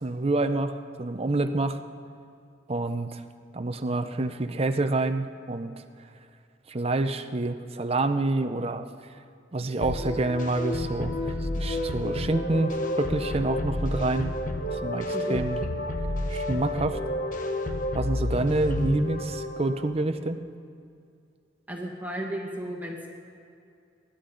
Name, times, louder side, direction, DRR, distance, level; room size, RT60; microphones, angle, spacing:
voice 1, 0.0-1.8 2.7-3.2 3.5-5.7 6.7-8.8 9.5-14.3 14.7-15.6 16.3-17.0 17.9-20.4, right 2 dB, 35° right, 8 dB, 0.6 m, -27 dB
sound 1, 9.8-19.9, left 1 dB, 45° left, 1.0 m, -30 dB
voice 2, 21.7-23.1, right 1 dB, 10° right, -1 dB, 1.7 m, -34 dB
25.0 x 11.5 x 3.9 m, 2.4 s
head